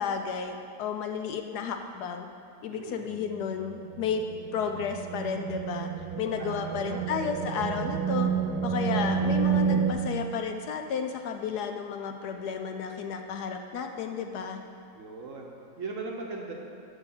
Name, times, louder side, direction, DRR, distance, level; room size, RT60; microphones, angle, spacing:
voice 1, 0.0-2.3 2.6-4.2 4.5-5.9 6.2-8.3 8.6-14.6, left 6 dB, 75° left, 5 dB, 1.0 m, -32 dB
voice 2, 2.7-3.1 6.4-7.1 14.9-16.5, right 3 dB, 55° right, 0 dB, 1.0 m, -39 dB
sound 1, 3.2-9.9, right 7 dB, 75° right, 1.1 m, -29 dB
6.7 x 6.3 x 7.0 m, 2.4 s
omnidirectional pair, 1.9 m